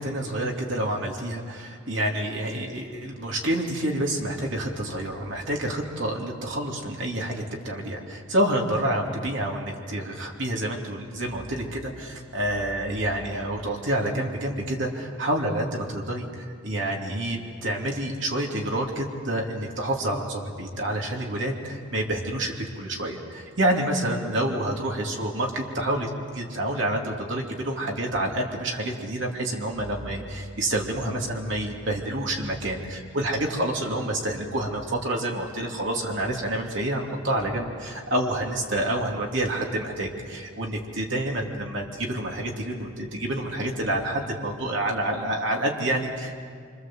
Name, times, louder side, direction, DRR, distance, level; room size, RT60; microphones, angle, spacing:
voice 1, 0.0-46.4, right 1 dB, 65° right, 0 dB, 3.1 m, -28 dB
27.0 x 25.5 x 7.8 m, 2.2 s
head